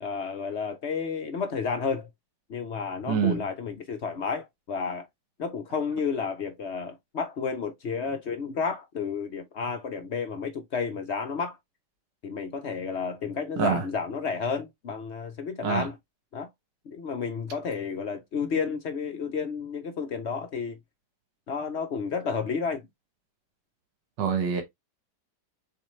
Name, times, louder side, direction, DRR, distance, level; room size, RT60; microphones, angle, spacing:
voice 1, 0.0-2.1 2.5-5.1 5.4-11.6 12.2-16.0 16.3-16.5 16.9-20.8 21.5-22.8, left 5 dB, 60° left, 0.7 m, -31 dB
voice 2, 3.1-3.4 13.6-13.9 15.6-15.9 24.2-24.6, right 7 dB, 85° right, 1.7 m, -25 dB
6.9 x 2.5 x 3.1 m
omnidirectional pair, 1.9 m